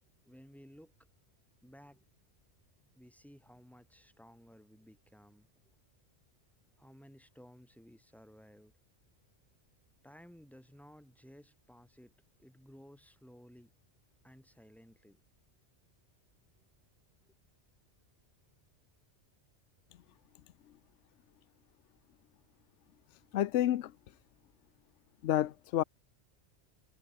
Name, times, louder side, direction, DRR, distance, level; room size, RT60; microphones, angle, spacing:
voice 1, 0.2-0.9 1.6-2.0 2.9-5.5 6.8-8.7 10.0-12.1 12.4-13.7 14.2-15.2 17.3-17.4, equal, ahead, 3.9 m, -57 dB
voice 2, 23.3-23.9 25.2-25.8, left 12 dB, 80° left, 1.0 m, -29 dB
omnidirectional pair, 1.2 m